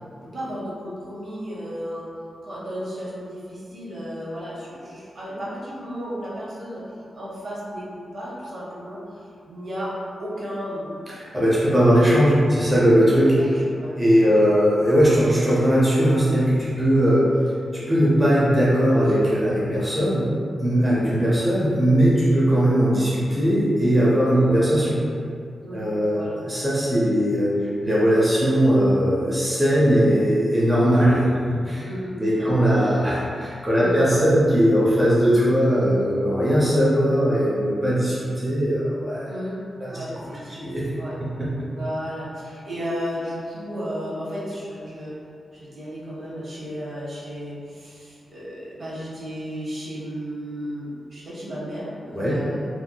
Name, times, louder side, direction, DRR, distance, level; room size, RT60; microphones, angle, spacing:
voice 1, 0.0-2.1 2.4-7.9 8.1-10.9 11.9-12.1 12.8-14.4 20.8-21.1 24.3-24.5 25.6-25.8 26.1-26.4 31.8-33.0 33.8-34.0 39.3-39.6 39.8-41.2 41.7-45.2 45.5-52.7, equal, 50° right, -7 dB, 0.8 m, -34 dB
voice 2, 11.2-13.4 14.0-17.3 17.7-20.3 20.6-25.0 25.7-27.5 27.8-31.9 32.2-39.3 39.8-40.0 40.5-40.9 41.4-41.5 52.1-52.4, equal, 15° right, -8 dB, 0.6 m, -19 dB
3.1 x 2.7 x 2.2 m, 2.3 s
wide cardioid pair, 115°, 0 cm